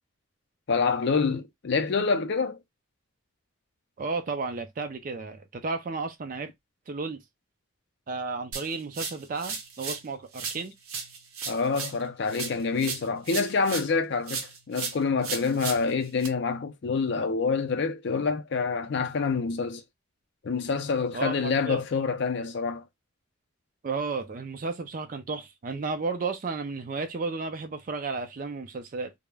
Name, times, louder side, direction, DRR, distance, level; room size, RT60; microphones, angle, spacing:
voice 1, 0.7-2.6 11.5-19.8 20.4-22.8, left 4 dB, 55° left, 0.4 m, -27 dB
voice 2, 4.0-6.5 6.9-7.2 8.1-10.7 21.1-21.8 23.8-29.1, right 4 dB, 40° right, 0.4 m, -33 dB
sound 1, 8.5-10.1 10.3-14.0 14.3-16.3, right 5 dB, 85° right, 0.6 m, -36 dB
2.3 x 2.0 x 3.2 m
head